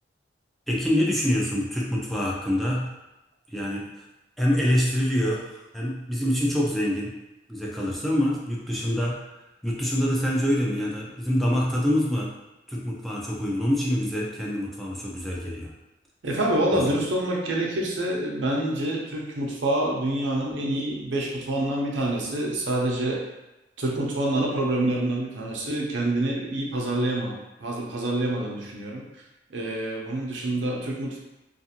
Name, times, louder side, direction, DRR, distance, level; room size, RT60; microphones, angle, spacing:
voice 1, 0.7-3.0 3.5-4.0 4.4-7.2 7.5-9.2 9.6-12.3 12.7-15.7, equal, ahead, -4 dB, 0.4 m, -25 dB
voice 2, 16.2-23.2 23.8-29.0 29.5-31.2, right 1 dB, 85° right, -2 dB, 0.6 m, -27 dB
2.5 x 2.4 x 2.8 m, 0.96 s
head